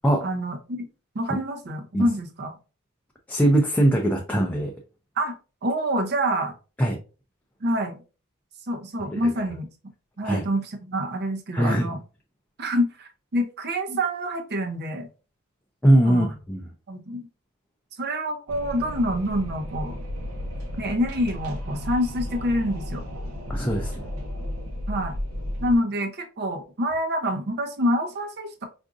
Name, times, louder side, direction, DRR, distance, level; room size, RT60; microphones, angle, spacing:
voice 1, 0.2-0.8 1.1-2.6 5.2-5.4 5.6-6.5 7.6-8.0 8.7-9.7 10.2-12.0 12.6-15.1 16.0-16.3 16.9-17.3 18.0-20.0 20.8-23.0 24.9-25.1 25.6-28.7, equal, 50° right, 5 dB, 0.6 m, -26 dB
voice 2, 3.3-4.7 6.8-7.0 9.1-9.2 10.2-10.4 11.5-11.9 15.8-16.6 23.5-24.1, right 1 dB, 5° left, 0 dB, 0.4 m, -21 dB
Wind, 18.5-25.8, left 1 dB, 85° right, 0.9 m, -33 dB
4.7 x 2.5 x 2.4 m, 0.33 s
head